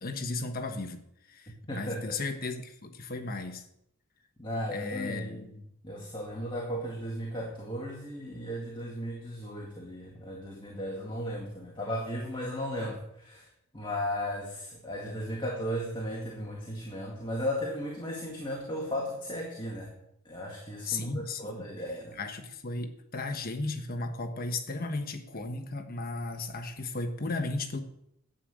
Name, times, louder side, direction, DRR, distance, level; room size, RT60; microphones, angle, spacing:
voice 1, 0.0-1.0 1.3-3.6 4.7-5.5 20.8-21.7 22.1-27.8, left 3 dB, 45° left, 6 dB, 1.2 m, -35 dB
voice 2, 1.7-2.2 4.4-5.5 5.8-13.4 13.7-19.9 20.3-22.2, equal, 25° left, -2 dB, 2.1 m, -35 dB
11.0 x 8.7 x 6.3 m, 0.76 s
head